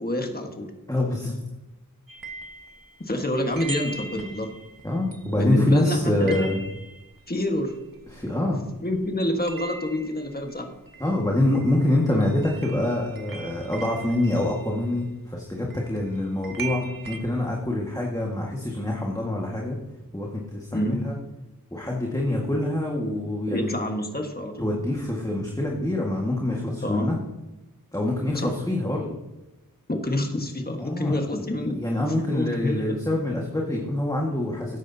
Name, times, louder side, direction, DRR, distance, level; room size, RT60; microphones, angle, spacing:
voice 1, 0.0-0.7 3.0-4.5 5.4-6.5 7.3-7.7 8.8-10.7 20.7-21.0 23.5-24.7 26.8-27.1 28.3-28.5 29.9-31.8 32.3-33.0, left 1 dB, 25° left, 3 dB, 1.5 m, -27 dB
voice 2, 0.9-1.4 4.8-6.6 8.1-8.7 11.0-19.8 20.1-21.1 21.7-23.7 24.6-27.2 27.9-29.1 30.8-31.2 31.7-34.8, left 1 dB, 10° left, -2 dB, 1.7 m, -25 dB
sound 1, 2.1-8.7 8.9-17.2, right 4 dB, 70° right, 1.4 m, -41 dB
13.5 x 9.7 x 2.8 m, 1.0 s
wide cardioid pair, 45°, 35 cm